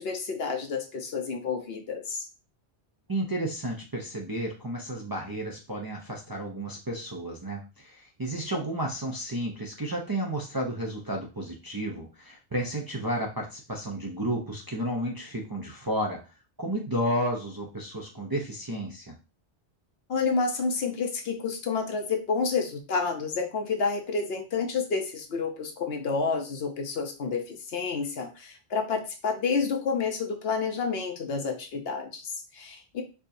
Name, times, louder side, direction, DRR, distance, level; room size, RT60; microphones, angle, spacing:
voice 1, 0.0-2.3 20.1-33.0, left 5 dB, 70° left, 4 dB, 0.9 m, -29 dB
voice 2, 3.1-16.2 16.6-19.1, right 1 dB, 25° right, -2 dB, 0.5 m, -32 dB
4.5 x 2.8 x 2.6 m, 0.31 s
omnidirectional pair, 1.1 m